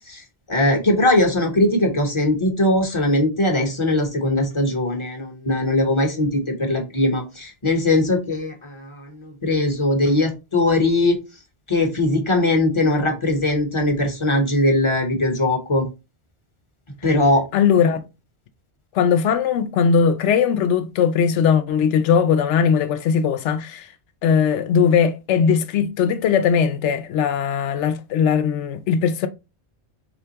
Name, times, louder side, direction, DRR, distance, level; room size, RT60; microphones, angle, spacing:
voice 1, 0.5-11.2 11.7-15.9 17.0-17.4, left 1 dB, 30° left, 0.9 m, -20 dB
voice 2, 17.5-18.0 18.9-23.9 24.2-29.3, left 7 dB, 90° left, 0.9 m, -19 dB
4.3 x 3.4 x 2.8 m
omnidirectional pair, 1.2 m